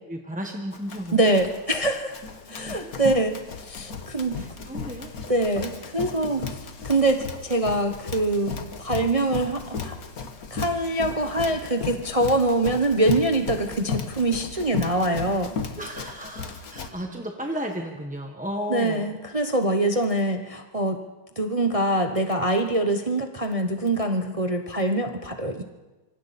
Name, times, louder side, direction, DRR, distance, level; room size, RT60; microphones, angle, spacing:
voice 1, 0.1-1.2 2.5-2.9 4.3-5.1 15.8-19.1, equal, 5° right, 2 dB, 1.0 m, -34 dB
Run, 0.7-16.9, left 5 dB, 45° left, 1.6 m, -35 dB
voice 2, 1.1-2.2 2.5-4.4 5.3-10.0 10.5-15.5 18.7-21.0 21.4-25.6, right 1 dB, 40° right, 5 dB, 0.4 m, -24 dB
26.0 x 24.5 x 4.2 m, 1.1 s
omnidirectional pair, 2.3 m